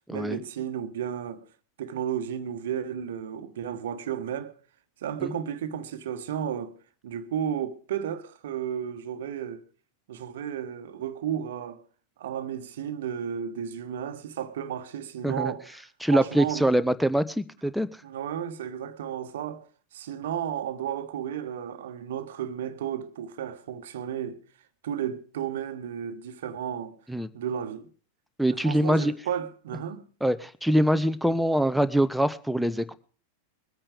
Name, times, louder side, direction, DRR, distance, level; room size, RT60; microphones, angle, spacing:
voice 1, 0.0-1.4 1.8-4.5 5.0-6.7 7.0-9.6 10.1-11.8 12.2-15.7 16.1-16.7 18.0-19.6 19.9-24.4 24.8-27.0 27.3-27.9 28.5-30.0, right 9 dB, 60° right, 1.2 m, -33 dB
voice 2, 16.0-17.9 27.1-27.3 28.4-29.1 30.2-32.9, right 1 dB, ahead, 0.7 m, -24 dB
21.5 x 8.9 x 4.9 m
figure-of-eight pair, 90°, 0 cm